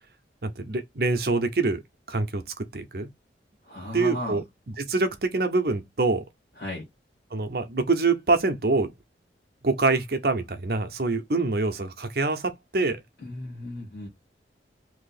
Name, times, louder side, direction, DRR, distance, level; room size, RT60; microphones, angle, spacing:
voice 1, 0.4-1.8 2.1-3.1 3.9-6.2 7.3-8.9 9.6-13.0, right 3 dB, 60° right, 0.7 m, -25 dB
voice 2, 3.6-4.4 6.6-6.9 13.2-14.1, left 1 dB, 65° left, 1.6 m, -34 dB
3.0 x 2.8 x 4.0 m
head